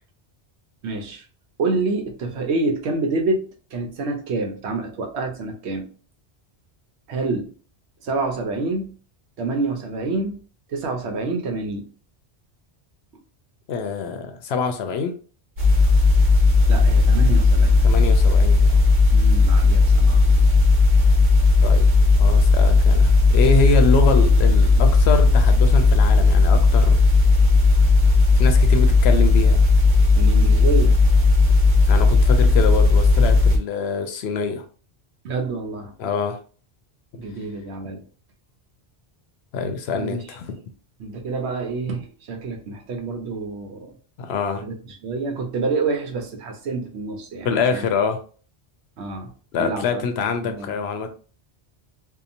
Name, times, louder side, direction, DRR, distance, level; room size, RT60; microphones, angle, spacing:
voice 1, 0.8-1.2 1.6-5.9 7.1-7.5 8.0-9.0 9.4-10.4 10.7-11.9 16.7-17.8 19.1-20.5 30.2-31.0 35.2-35.9 37.1-38.0 40.0-40.2 41.0-43.9 44.6-47.8 49.0-49.3 49.6-50.7, right 3 dB, 80° right, 4 dB, 1.0 m, -27 dB
voice 2, 13.7-15.1 17.8-18.8 21.6-21.9 22.2-27.0 28.4-29.6 31.9-34.6 36.0-36.4 39.5-40.6 44.2-44.6 47.4-48.2 49.5-51.1, left 4 dB, 75° left, 7 dB, 0.8 m, -25 dB
sound 1, 15.6-33.6, left 3 dB, 65° right, 1.2 m, -15 dB
2.8 x 2.3 x 2.5 m, 0.40 s
omnidirectional pair, 1.1 m